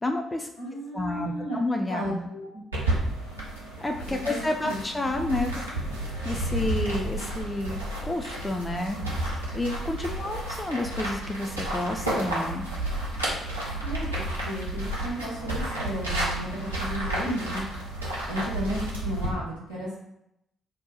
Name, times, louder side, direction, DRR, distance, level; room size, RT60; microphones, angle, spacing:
voice 1, 0.0-0.5 0.9-2.1 3.8-5.6 6.2-9.0 9.3-12.6, left 2 dB, 20° left, 4 dB, 0.4 m, -30 dB
voice 2, 0.6-1.6 1.9-2.6 4.2-4.8 13.8-17.6 18.3-19.9, equal, 85° left, -10 dB, 1.1 m, -34 dB
sound 1, 2.7-19.3, right 1 dB, 85° right, 0.6 m, -31 dB
2.8 x 2.2 x 3.7 m, 0.83 s
figure-of-eight pair, 40°, 0 cm